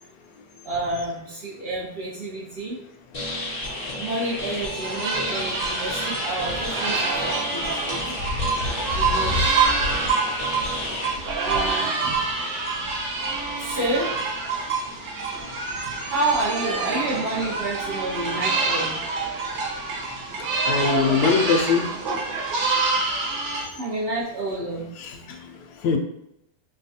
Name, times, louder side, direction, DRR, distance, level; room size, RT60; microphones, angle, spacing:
voice 1, 0.6-2.8 3.9-8.2 8.9-9.5 11.4-12.2 13.6-14.2 16.0-19.0 23.8-24.9, right 2 dB, 60° right, -7 dB, 0.6 m, -29 dB
sound 1, 3.1-11.1, left 1 dB, 50° left, 0.4 m, -32 dB
sound 2, 4.8-23.6, right 4 dB, 85° right, 1.4 m, -26 dB
voice 2, 20.6-21.9 25.0-25.2 25.8-26.0, left 5 dB, 80° left, 5 dB, 1.1 m, -21 dB
4.6 x 2.3 x 2.7 m, 0.82 s
omnidirectional pair, 1.8 m